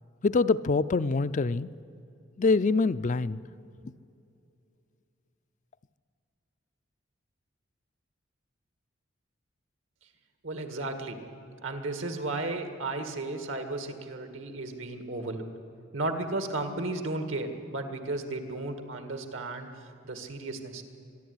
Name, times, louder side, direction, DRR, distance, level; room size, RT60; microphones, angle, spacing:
voice 1, 0.2-1.7 2.4-3.4, left 3 dB, 40° left, 14 dB, 0.4 m, -25 dB
voice 2, 10.4-11.2 11.6-15.4 15.9-19.7 20.0-20.8, right 2 dB, 75° right, 7 dB, 2.1 m, -34 dB
25.0 x 11.0 x 9.7 m, 2.6 s
head